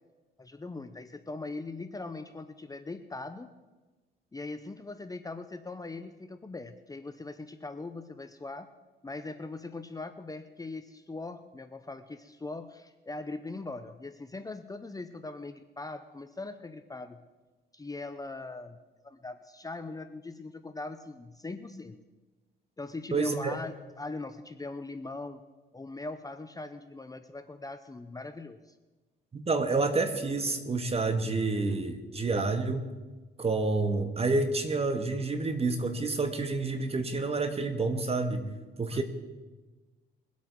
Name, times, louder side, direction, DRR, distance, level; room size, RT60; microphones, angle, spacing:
voice 1, 0.4-3.5 4.3-8.7 9.0-17.2 17.7-18.8 19.0-22.0 22.8-25.4 25.7-28.7 38.9-39.0, left 3 dB, 20° left, 9 dB, 0.7 m, -41 dB
voice 2, 23.1-23.6 29.3-32.9 33.4-38.5 38.8-39.0, right 3 dB, 30° right, 7 dB, 1.7 m, -29 dB
22.0 x 8.3 x 4.7 m, 1.2 s
cardioid pair, 90°, 20 cm